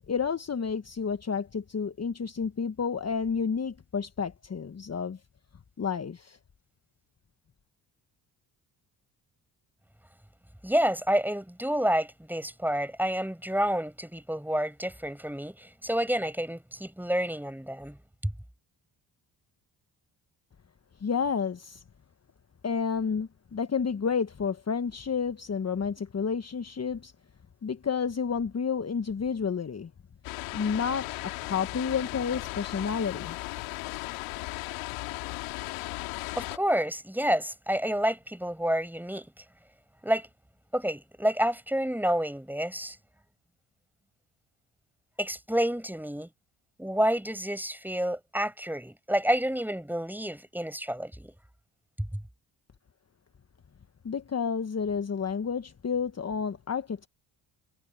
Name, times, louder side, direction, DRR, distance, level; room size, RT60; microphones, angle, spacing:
voice 1, 0.1-5.2 5.8-6.4 21.0-21.8 22.6-27.1 27.6-29.9 30.5-33.4 54.0-57.1, left 6 dB, 35° left, 1.3 m, -30 dB
voice 2, 10.6-18.3 36.3-39.3 40.0-40.3 40.7-43.0 45.2-46.3 46.8-51.3 52.0-52.2, equal, 5° right, 5.7 m, -29 dB
sound 1, 30.2-36.6, left 22 dB, 90° left, 2.8 m, -36 dB
hypercardioid pair, 50°, 46 cm